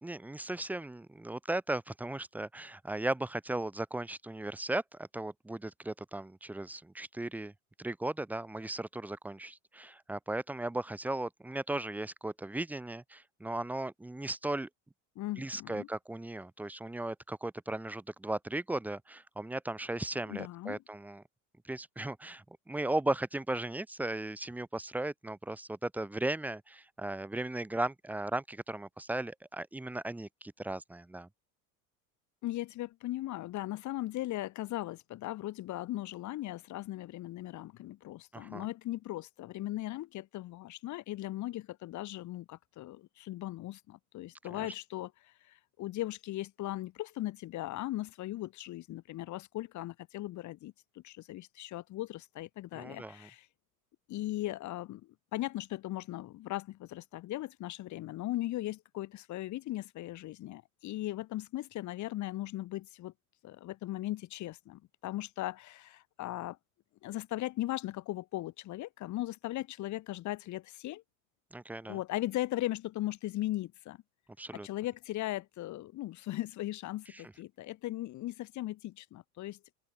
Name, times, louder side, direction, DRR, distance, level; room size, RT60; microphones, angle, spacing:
voice 1, 0.0-7.5 7.8-14.7 15.4-21.2 21.7-31.3 38.3-38.7 44.5-44.7 52.7-53.3 71.5-72.0 74.4-74.7, right 2 dB, 5° right, 0.5 m, -37 dB
voice 2, 15.1-15.9 20.3-20.8 32.4-53.5 54.1-63.1 63.4-66.6 67.0-71.0 71.9-74.0 74.5-79.6, left 16 dB, 40° left, 1.1 m, -38 dB
open air
hypercardioid pair, 100°, 43 cm